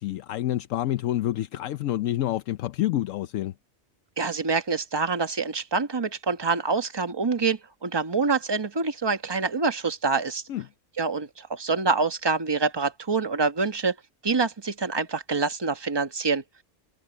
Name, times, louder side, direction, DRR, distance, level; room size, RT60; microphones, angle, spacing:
voice 1, 0.0-3.5 10.5-10.6, left 13 dB, 80° left, 1.0 m, -28 dB
voice 2, 4.2-10.4 11.0-13.9 14.2-16.4, right 4 dB, 20° right, 1.1 m, -26 dB
omnidirectional pair, 1.3 m